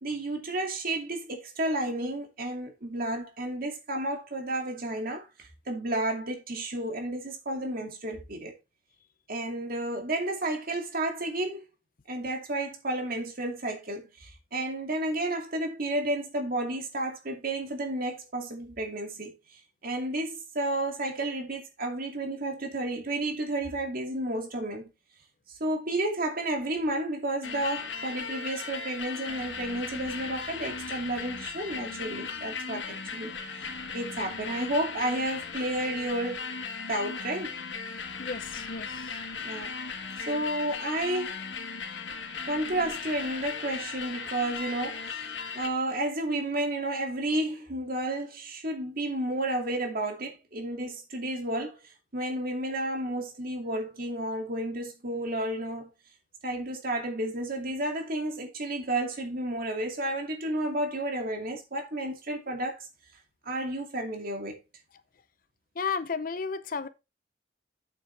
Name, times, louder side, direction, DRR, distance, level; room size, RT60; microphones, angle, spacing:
voice 1, 0.0-8.5 9.3-11.6 12.1-24.9 25.5-36.5 36.9-37.6 39.4-39.7 40.3-41.4 42.5-55.9 56.4-62.9 63.4-64.6, right 1 dB, 55° right, 2.4 m, -32 dB
sound 1, 27.4-45.7, left 5 dB, 90° left, 1.5 m, -37 dB
voice 2, 37.9-39.2 65.8-66.9, left 5 dB, 50° left, 0.6 m, -34 dB
8.5 x 7.4 x 3.3 m
head